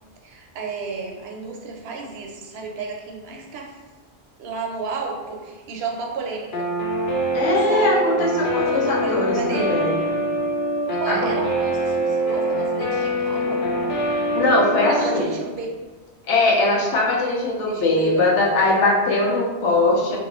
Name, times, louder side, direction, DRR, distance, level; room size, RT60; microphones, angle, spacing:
voice 1, 0.2-3.8 4.4-6.7 7.7-8.0 8.7-9.8 10.9-13.7 14.8-15.7 16.7-16.9 17.6-18.7, right 4 dB, 65° right, 0 dB, 0.8 m, -32 dB
Guitar, 6.5-15.2, right 1 dB, 55° left, 0.7 m, -24 dB
voice 2, 7.3-10.0 11.1-11.3 14.3-15.3 16.3-20.2, left 2 dB, 85° left, -3 dB, 1.0 m, -20 dB
3.0 x 2.5 x 2.9 m, 1.3 s
omnidirectional pair, 1.2 m